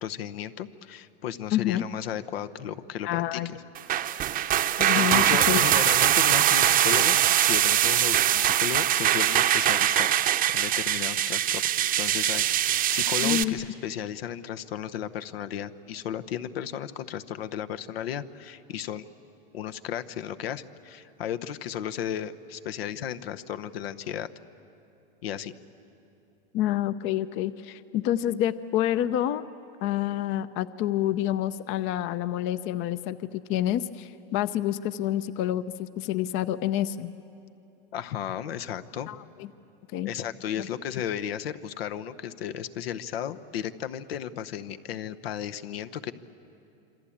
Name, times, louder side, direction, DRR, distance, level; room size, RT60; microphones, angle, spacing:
voice 1, 0.0-3.6 5.0-10.1 10.5-19.0 19.5-24.3 25.2-25.5 37.9-39.1 40.0-46.1, left 10 dB, 80° left, 11 dB, 1.0 m, -34 dB
voice 2, 1.5-1.8 3.0-3.5 4.8-5.6 13.2-13.5 26.5-29.4 29.8-37.1 39.1-39.5 39.9-40.1 40.6-40.7, left 12 dB, 45° left, 14 dB, 0.7 m, -28 dB
sound 1, 3.7-13.4, right 12 dB, 30° right, 0.8 m, -22 dB
27.0 x 24.5 x 8.7 m, 2.8 s
supercardioid pair, 125°, 30 cm